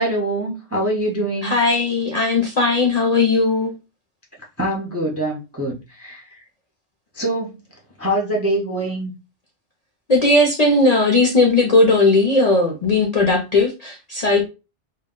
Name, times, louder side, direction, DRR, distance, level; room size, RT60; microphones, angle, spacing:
voice 1, 0.0-1.5 4.6-6.2 7.1-7.5 8.0-9.1, right 1 dB, 20° right, 0.4 m, -24 dB
voice 2, 1.4-3.7 10.1-14.5, left 2 dB, 50° left, 0.5 m, -17 dB
2.2 x 2.1 x 3.6 m
omnidirectional pair, 1.2 m